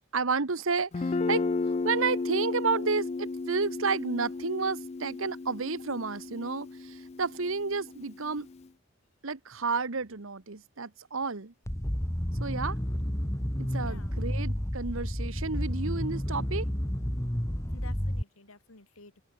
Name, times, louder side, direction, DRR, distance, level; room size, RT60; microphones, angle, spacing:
voice 1, 0.1-1.4 1.8-8.5 9.2-11.5 12.4-12.8 13.6-16.7, right 4 dB, 75° right, 1.2 m, -31 dB
Guitar, 0.9-8.6, left 3 dB, 30° left, 0.4 m, -34 dB
sound 1, 11.7-18.2, equal, 15° left, 1.6 m, -31 dB
voice 2, 13.7-14.2 17.7-19.2, left 3 dB, 85° left, 3.1 m, -52 dB
open air
head